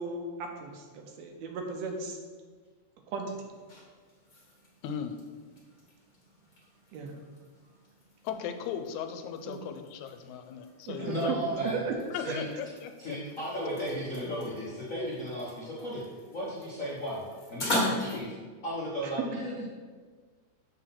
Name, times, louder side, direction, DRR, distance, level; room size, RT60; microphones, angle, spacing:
voice 1, 0.0-2.2 3.1-3.3 6.9-7.1 9.5-9.6 10.9-11.5 11.9-12.0 12.3-12.4 19.0-19.1, right 4 dB, 70° right, 3 dB, 1.9 m, -36 dB
taking a shit with afterlaugh, 3.3-18.2, left 1 dB, 40° left, 1.5 m, -41 dB
voice 2, 4.8-5.1 8.2-11.3 12.1-13.2, left 8 dB, 90° left, 7 dB, 2.0 m, -37 dB
voice 3, 11.0-11.8 12.2-12.5 13.0-16.0 16.3-18.4 18.6-19.7, equal, 60° left, -7 dB, 0.8 m, -35 dB
6.7 x 4.0 x 5.8 m, 1.5 s
omnidirectional pair, 3.3 m